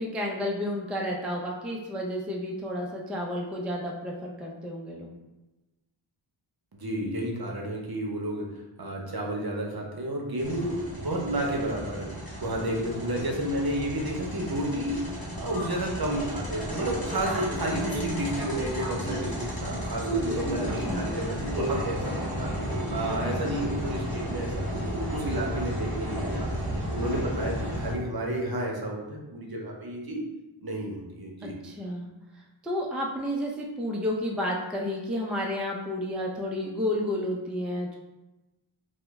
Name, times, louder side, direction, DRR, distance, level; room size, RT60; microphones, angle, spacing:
voice 1, 0.0-5.1 20.6-21.1 31.4-32.1 32.6-37.9, left 1 dB, ahead, 0 dB, 0.3 m, -31 dB
voice 2, 6.7-8.5 8.8-12.1 12.4-26.5 26.9-30.2 30.6-31.5, right 1 dB, 50° right, 0 dB, 0.6 m, -31 dB
sound 1, 10.4-27.9, equal, 45° left, 0.8 m, -32 dB
2.9 x 2.1 x 3.4 m, 1.1 s
wide cardioid pair, 40°, 48 cm